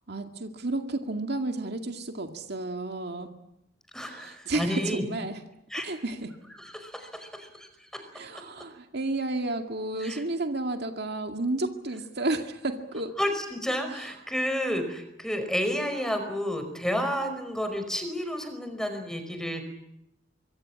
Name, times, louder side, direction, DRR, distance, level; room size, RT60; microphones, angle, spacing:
voice 1, 0.1-3.3 4.0-5.4 5.8-6.3 8.1-13.1 13.9-14.1, right 2 dB, 60° right, 5 dB, 2.2 m, -32 dB
voice 2, 3.9-5.0 5.7-5.8 6.6-7.7 10.0-10.2 13.2-19.6, equal, 5° left, 7 dB, 5.1 m, -31 dB
25.5 x 23.5 x 8.8 m, 0.82 s
head